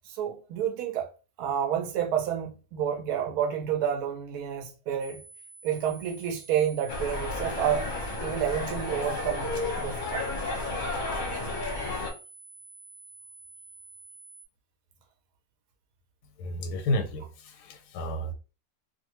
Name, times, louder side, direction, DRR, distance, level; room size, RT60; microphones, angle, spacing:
voice 1, 0.0-1.1 1.4-5.2 5.6-7.9 8.2-10.3, right 9 dB, 75° right, 1.1 m, -29 dB
sound 1, 5.0-14.5, right 3 dB, 5° left, 0.9 m, -50 dB
sound 2, 6.9-12.1, left 2 dB, 40° left, 0.8 m, -32 dB
voice 2, 16.4-18.3, left 1 dB, 90° left, 1.2 m, -31 dB
2.5 x 2.5 x 3.0 m
omnidirectional pair, 1.7 m